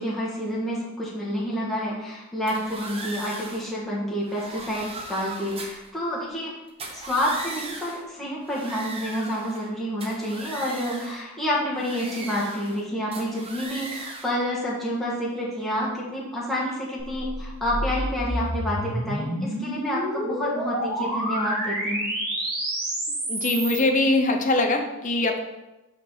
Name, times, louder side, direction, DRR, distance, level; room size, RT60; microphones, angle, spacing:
voice 1, 0.0-6.6 6.9-22.1, equal, ahead, -7 dB, 1.5 m, -29 dB
sound 1, 2.5-3.7 4.2-5.9 6.7-8.1 8.4-9.7 10.0-11.2 11.8-12.8 13.1-14.4, right 2 dB, 25° right, 0.7 m, -38 dB
sound 2, 17.0-23.8, equal, 40° right, 1.8 m, -29 dB
voice 2, 23.3-25.4, left 2 dB, 35° left, 4 dB, 0.6 m, -22 dB
5.1 x 4.2 x 5.6 m, 1.0 s
head